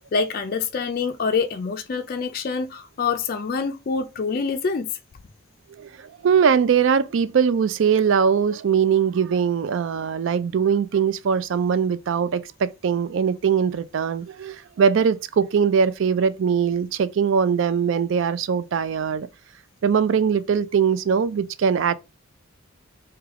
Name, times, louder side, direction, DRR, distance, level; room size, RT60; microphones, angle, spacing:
voice 1, 0.1-4.9, left 5 dB, 45° left, 0.3 m, -26 dB
voice 2, 5.7-19.3 19.8-21.9, right 7 dB, 65° right, 0.3 m, -21 dB
3.3 x 2.3 x 3.6 m
head